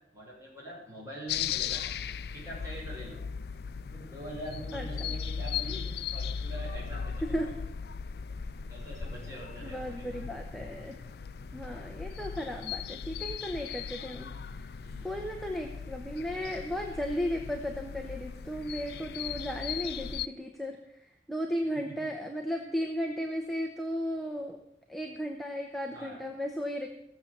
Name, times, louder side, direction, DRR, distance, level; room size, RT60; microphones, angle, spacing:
voice 1, 0.1-1.9 2.3-3.2 3.9-7.4 8.7-10.2 14.8-15.2 21.7-22.1 25.9-26.2, right 1 dB, 20° right, -4 dB, 5.6 m, -44 dB
sound 1, 1.3-20.3, left 7 dB, 60° left, 0.4 m, -38 dB
voice 2, 9.6-11.0 11.5-14.6 15.0-20.8 21.3-24.6 24.9-26.9, equal, ahead, 1 dB, 0.9 m, -35 dB
16.0 x 7.5 x 6.7 m, 0.79 s
head